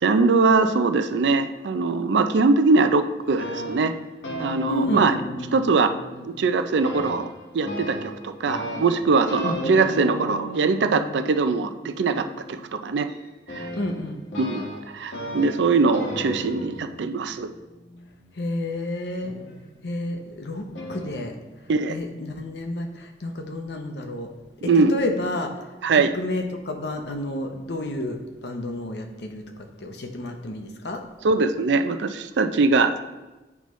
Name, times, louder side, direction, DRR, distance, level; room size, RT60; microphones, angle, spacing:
voice 1, 0.0-3.9 4.4-5.1 5.5-5.9 6.2-7.3 7.5-13.1 13.5-13.7 14.4-14.6 14.9-17.5 21.7-22.0 24.6-24.9 25.8-26.1 31.2-33.0, right 4 dB, 80° right, 9 dB, 0.4 m, -21 dB
sound 1, 3.2-6.5 6.8-18.4 19.2-20.1 20.8-21.1, equal, 85° left, 1.8 m, -35 dB
voice 2, 4.7-5.2 9.4-9.6 13.8-14.2 18.4-19.3 19.8-21.4 21.9-24.3 24.9-25.5 25.9-31.0, left 1 dB, 70° left, 4 dB, 0.8 m, -30 dB
8.3 x 5.4 x 3.1 m, 1.1 s
head